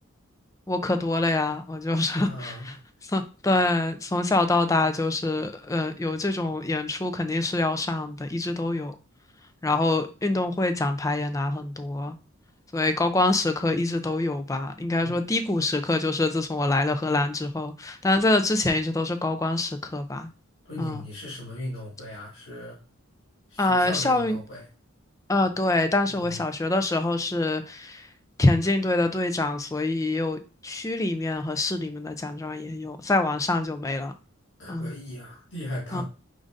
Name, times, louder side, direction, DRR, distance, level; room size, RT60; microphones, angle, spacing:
voice 1, 0.7-2.7 3.1-9.0 9.6-12.2 12.7-20.3 20.8-21.0 23.6-24.4 25.3-28.1 28.4-34.1 34.7-34.9 35.9-36.0, left 2 dB, 15° left, 9 dB, 0.4 m, -25 dB
voice 2, 2.0-2.8 15.0-15.2 20.7-22.8 23.5-24.6 26.1-26.4 34.6-36.0, left 1 dB, 60° left, -5 dB, 1.7 m, -37 dB
5.2 x 3.7 x 2.5 m, 0.33 s
head